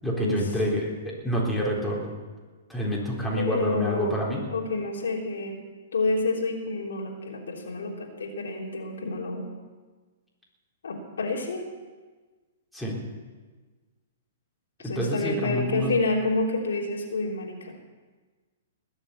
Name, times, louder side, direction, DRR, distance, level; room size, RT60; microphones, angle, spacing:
voice 1, 0.0-2.1 2.7-4.4 12.7-13.0 14.8-15.9, equal, ahead, -5 dB, 4.0 m, -27 dB
voice 2, 3.3-4.2 4.5-5.6 5.9-9.4 10.8-11.6 14.8-17.7, left 3 dB, 90° left, -1 dB, 3.3 m, -29 dB
20.0 x 7.2 x 8.6 m, 1.4 s
hypercardioid pair, 140°, 0 cm